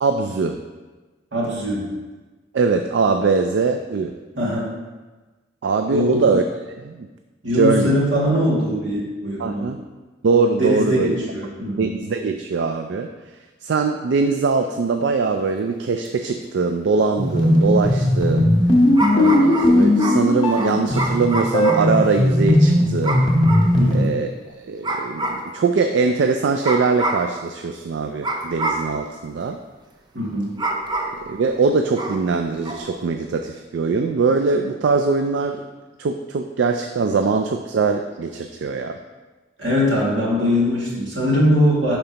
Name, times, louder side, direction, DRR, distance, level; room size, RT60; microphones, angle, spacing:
voice 1, 0.0-0.6 2.5-4.2 5.6-6.4 6.8-7.1 7.5-8.0 9.4-9.8 10.2-11.1 11.8-13.1 13.6-18.6 19.1-23.3 23.9-29.6 31.3-35.6 36.0-39.0, right 4 dB, 70° right, 6 dB, 0.4 m, -21 dB
voice 2, 1.3-1.9 4.3-4.7 5.8-6.3 7.4-9.7 10.6-11.9 23.7-24.1 30.1-30.5 39.6-42.0, equal, 90° right, -5 dB, 2.1 m, -21 dB
sound 1, 16.1-16.2 19.0-22.0 23.0-23.7 24.8-25.5 26.6-27.3 28.2-28.9 30.6-31.3 31.9-32.3 32.6-32.9, right 2 dB, 25° right, 0.6 m, -26 dB
sound 2, 17.2-24.0, left 1 dB, 25° left, 1.0 m, -17 dB
10.5 x 4.4 x 2.9 m, 1.3 s
head